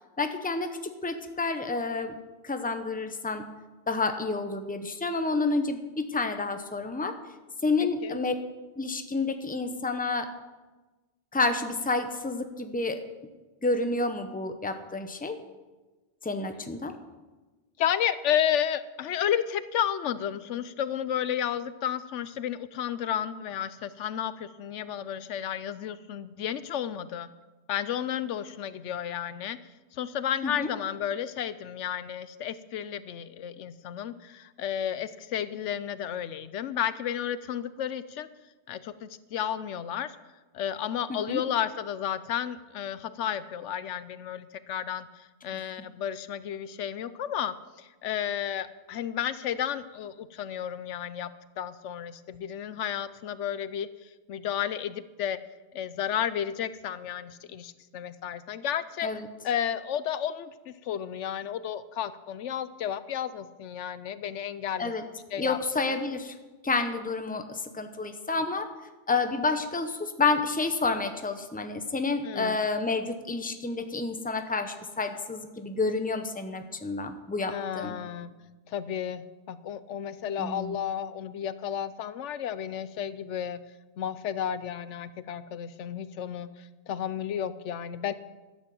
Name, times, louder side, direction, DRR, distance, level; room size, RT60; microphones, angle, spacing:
voice 1, 0.2-2.2 2.4-3.4 3.9-7.2 7.6-8.3 8.8-10.3 11.3-13.0 13.6-15.4 16.2-16.9 30.4-30.7 41.1-41.4 59.0-59.3 64.8-65.0 65.4-66.3 66.6-68.7 69.1-78.0 80.4-80.7, left 3 dB, 10° left, 7 dB, 0.8 m, -29 dB
voice 2, 17.8-27.3 27.7-29.6 29.9-38.3 38.7-40.2 40.5-51.3 51.6-55.4 55.7-59.1 59.4-64.9 65.3-65.6 65.9-66.0 72.2-72.6 77.5-78.3 78.7-83.6 84.0-88.1, left 9 dB, 80° left, 15 dB, 1.0 m, -32 dB
12.5 x 9.0 x 7.7 m, 1.2 s
omnidirectional pair, 1.2 m